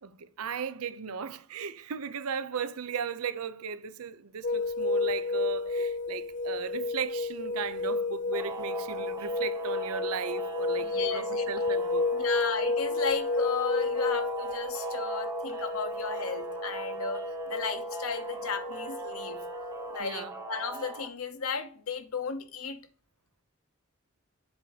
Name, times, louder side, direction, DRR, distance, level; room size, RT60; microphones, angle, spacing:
voice 1, 0.0-12.0 20.0-20.3, right 6 dB, 90° right, 0.6 m, -36 dB
sound 1, 4.4-20.0, left 3 dB, 35° left, 0.3 m, -32 dB
sound 2, 8.3-21.1, right 3 dB, 15° right, 0.8 m, -41 dB
voice 2, 10.7-11.5 12.2-19.4 19.9-22.8, left 5 dB, 80° left, 0.9 m, -35 dB
7.7 x 2.8 x 5.7 m
head